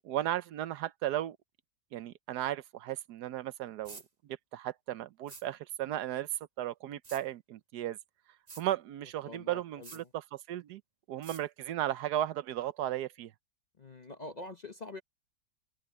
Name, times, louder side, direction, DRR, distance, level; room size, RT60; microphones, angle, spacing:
voice 1, 0.0-1.4 1.9-6.3 6.6-8.0 8.6-10.8 11.1-13.3, right 12 dB, 80° right, 1.3 m, -35 dB
sound 1, 3.8-4.1 5.3-5.4 7.0-7.2 8.5-8.6 9.8-10.0 11.2-11.4, right 4 dB, 25° right, 1.2 m, -48 dB
voice 2, 9.3-10.1 13.8-15.0, left 2 dB, 35° left, 0.8 m, -45 dB
omnidirectional pair, 1.7 m